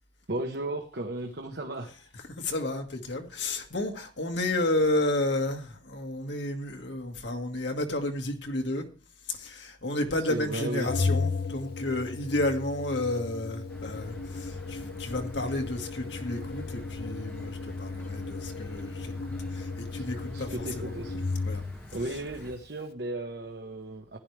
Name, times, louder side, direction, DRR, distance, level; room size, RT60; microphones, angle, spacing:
voice 1, 0.3-1.9 10.3-10.9 19.9-20.1 20.3-21.2 21.9-24.2, right 1 dB, 65° right, 1.2 m, -35 dB
voice 2, 1.9-8.9 9.3-19.1 19.5-21.0 21.4-21.6 21.9-22.2, left 2 dB, 85° left, 1.8 m, -31 dB
Organ, 10.8-21.9, left 3 dB, 55° left, 0.9 m, -35 dB
sound 1, 13.7-22.5, equal, 10° left, 2.5 m, -47 dB
15.5 x 10.5 x 3.4 m
head